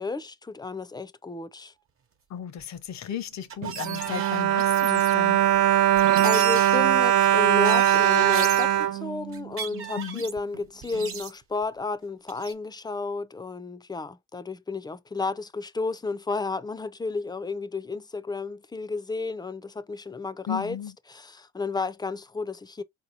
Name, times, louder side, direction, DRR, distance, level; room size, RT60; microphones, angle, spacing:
voice 1, 0.0-1.7 6.2-20.8 21.1-22.8, left 3 dB, 15° left, 0.4 m, -32 dB
voice 2, 2.3-5.4 9.9-10.3 20.5-20.9, left 9 dB, 65° left, 0.7 m, -35 dB
sound 1, 2.6-2.7 3.3-5.2 5.5-5.6 5.9-6.8 7.6-8.7 9.3-10.4 10.8-11.6 12.3-12.5, right 7 dB, 45° right, 0.9 m, -36 dB
Bowed string instrument, 3.6-9.9 10.5-10.6 10.9-11.1, right 12 dB, 85° right, 0.5 m, -21 dB
4.4 x 2.8 x 2.7 m
cardioid pair, 90°, 30 cm